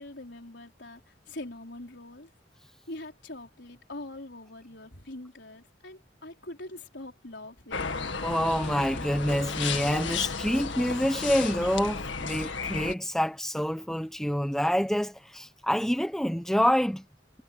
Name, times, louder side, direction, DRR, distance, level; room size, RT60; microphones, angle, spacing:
voice 1, 0.0-2.3 2.9-8.1, left 1 dB, 70° left, 4.8 m, -43 dB
sound 1, 7.7-12.9, left 5 dB, 85° left, 1.9 m, -33 dB
voice 2, 8.2-17.0, equal, 5° left, 0.8 m, -27 dB
head